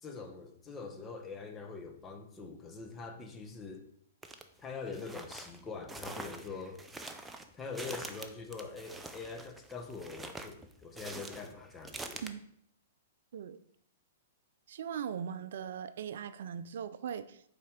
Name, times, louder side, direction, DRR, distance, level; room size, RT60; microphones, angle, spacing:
voice 1, 0.0-3.9 4.6-6.8 7.5-12.2, left 4 dB, 20° left, 4 dB, 0.9 m, -44 dB
sound 1, 4.2-4.4 4.9-12.3, right 2 dB, 10° right, 0.6 m, -45 dB
voice 2, 14.7-17.4, right 8 dB, 70° right, 13 dB, 0.4 m, -39 dB
5.6 x 4.3 x 5.0 m, 0.71 s
hypercardioid pair, 130°, 0 cm